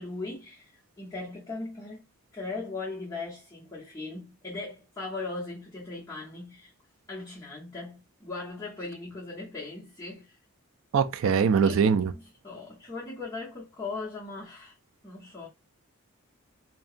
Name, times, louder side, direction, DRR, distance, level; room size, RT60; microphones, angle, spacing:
voice 1, 0.0-2.0 2.3-6.7 7.1-10.4 11.2-11.8 12.1-14.8 15.0-15.5, left 3 dB, 15° left, 0.9 m, -39 dB
voice 2, 10.9-12.1, right 6 dB, 65° right, 0.3 m, -22 dB
2.7 x 2.2 x 2.4 m
head